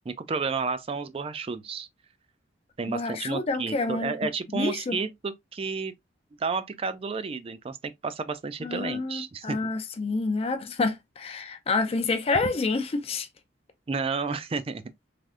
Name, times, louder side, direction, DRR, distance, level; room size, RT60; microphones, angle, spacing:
voice 1, 0.1-1.9 2.8-5.9 6.4-9.7 13.9-14.8, right 4 dB, 30° right, 0.3 m, -31 dB
voice 2, 2.9-4.2 4.5-5.0 8.6-13.3, left 3 dB, 35° left, 0.4 m, -28 dB
3.3 x 2.6 x 2.4 m
head